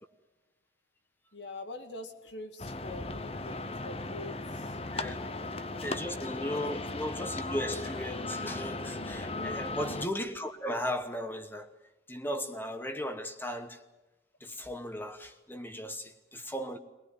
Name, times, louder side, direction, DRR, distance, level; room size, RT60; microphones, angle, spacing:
voice 1, 1.3-6.0 6.3-6.6 7.1-7.2 9.3-9.7, left 2 dB, 80° left, 2.2 m, -45 dB
sound 1, 2.6-10.1, left 2 dB, 35° left, 0.9 m, -37 dB
voice 2, 5.8-11.7 12.1-13.8 14.4-16.8, left 1 dB, 10° left, 1.1 m, -36 dB
23.0 x 19.0 x 9.6 m
head